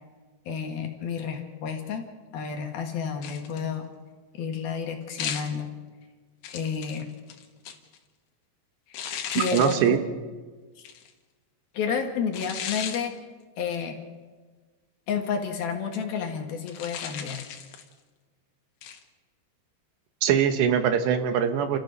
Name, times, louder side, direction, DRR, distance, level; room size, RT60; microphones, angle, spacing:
voice 1, 0.5-2.1 2.3-3.9 4.3-5.7 6.5-7.1 8.9-9.0 9.3-10.0 10.8-10.9 11.7-13.1 13.6-14.0 15.1-17.4, left 6 dB, 65° left, 3 dB, 3.4 m, -30 dB
sound 1, 3.2-3.7 5.2-5.6 6.4-8.0 8.9-9.9 10.8-11.1 12.3-13.1 16.7-17.9 18.8-19.0, left 8 dB, 80° left, 3.7 m, -35 dB
voice 2, 9.5-10.0 20.2-21.8, right 8 dB, 80° right, 8 dB, 3.4 m, -22 dB
29.0 x 14.0 x 6.6 m, 1.4 s
omnidirectional pair, 4.9 m